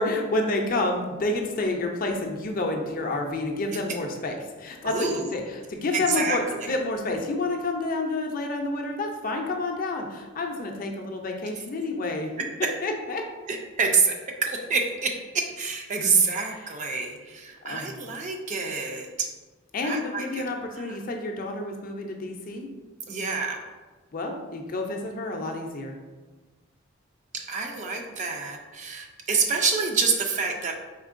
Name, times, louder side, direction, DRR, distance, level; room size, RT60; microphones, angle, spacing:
voice 1, 0.0-12.3 12.8-13.2 17.6-17.9 19.7-22.7 24.1-26.0, left 2 dB, 40° left, 2 dB, 0.4 m, -29 dB
voice 2, 4.8-5.3 5.9-6.7 13.5-19.3 19.8-20.4 20.7-21.0 23.1-23.6 27.3-30.7, right 4 dB, 35° right, 2 dB, 0.4 m, -27 dB
4.4 x 3.5 x 2.5 m, 1.3 s
head